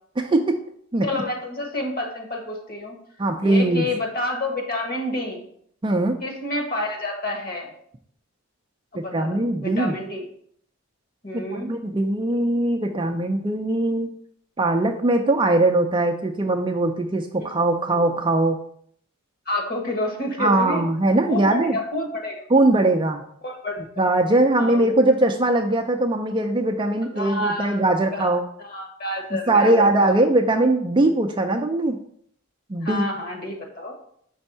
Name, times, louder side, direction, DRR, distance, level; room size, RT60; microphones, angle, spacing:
voice 1, 0.2-0.5 0.9-1.2 3.2-3.9 5.8-6.2 8.9-9.9 11.3-14.1 14.6-18.6 20.4-21.8 22.5-23.2 24.0-28.4 29.5-32.0 32.7-33.1, right 2 dB, 20° right, 4 dB, 0.4 m, -21 dB
voice 2, 1.0-3.0 3.4-5.4 6.2-7.7 8.9-10.3 11.2-11.7 19.4-20.9 21.3-22.4 22.7-22.8 23.4-24.0 24.6-24.9 27.2-27.8 28.1-28.3 28.6-30.2 32.8-33.9, left 1 dB, 45° left, 1 dB, 1.3 m, -29 dB
5.4 x 3.5 x 5.4 m, 0.64 s
head